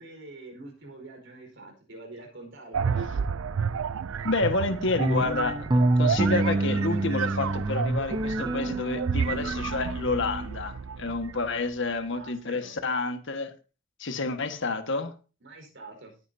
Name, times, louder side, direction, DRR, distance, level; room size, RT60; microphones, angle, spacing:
voice 1, 0.0-3.1 11.3-12.8 15.4-16.1, right 2 dB, 60° right, 3 dB, 4.7 m, -46 dB
sound 1, 2.7-11.5, right 6 dB, 80° right, 0.4 m, -31 dB
voice 2, 4.2-13.5 14.0-15.1, left 3 dB, 65° left, 8 dB, 1.6 m, -29 dB
sound 2, 5.0-10.5, right 2 dB, 20° right, 0.5 m, -27 dB
19.5 x 9.2 x 2.8 m, 0.34 s
head